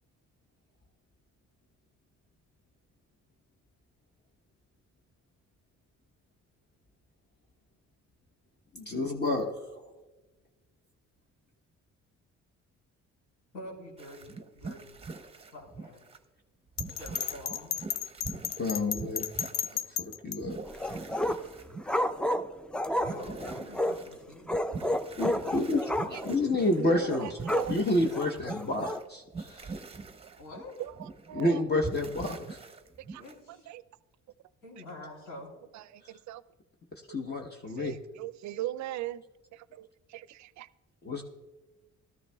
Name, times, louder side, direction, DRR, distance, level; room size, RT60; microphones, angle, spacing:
voice 1, 8.7-9.9 18.6-19.3 19.7-20.6 25.2-25.8 26.3-27.4 27.7-29.7 31.3-32.6 37.1-38.0 41.0-41.2, left 2 dB, 35° left, 1.0 m, -29 dB
voice 2, 13.5-15.0 15.5-16.0 16.8-17.7 23.0-24.5 25.4-26.4 30.4-30.8 33.2-33.7 34.6-35.5, left 1 dB, 85° left, 3.9 m, -46 dB
sound 1, 14.0-16.2 16.7-19.8 20.1-22.1 22.4-22.6 23.0-26.8 27.4-29.0 29.3-31.4 31.8-33.3, right 4 dB, 20° right, 0.7 m, -43 dB
Bell, 16.8-20.4, left 10 dB, 65° left, 0.5 m, -33 dB
sound 2, 20.7-21.5 21.9-24.0 24.5-26.4 26.6-26.7 27.1-27.7 28.1-29.0, left 1 dB, 5° left, 0.3 m, -31 dB
voice 3, 26.8-27.8 30.8-30.9 31.3-31.6 33.1-33.2 33.7-33.8 35.7-36.4 37.8-39.2 39.5-40.7, right 13 dB, 65° right, 0.5 m, -38 dB
17.0 x 13.0 x 2.3 m
cardioid pair, 90°, 30 cm